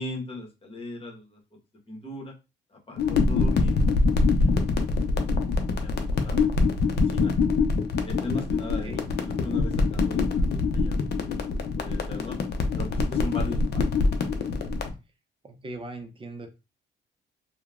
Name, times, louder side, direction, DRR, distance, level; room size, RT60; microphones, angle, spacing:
voice 1, 0.0-1.4 1.9-2.3 2.7-3.8 4.2-4.8 5.7-7.3 8.0-11.0 11.2-11.4 11.8-12.4 12.7-13.8, left 2 dB, 30° left, -1 dB, 1.2 m, -38 dB
sound 1, 3.0-14.9, left 3 dB, 55° left, 0.6 m, -24 dB
voice 2, 15.4-16.5, right 2 dB, 25° right, 6 dB, 0.6 m, -39 dB
2.8 x 2.2 x 2.4 m, 0.27 s
cardioid pair, 90°, 20 cm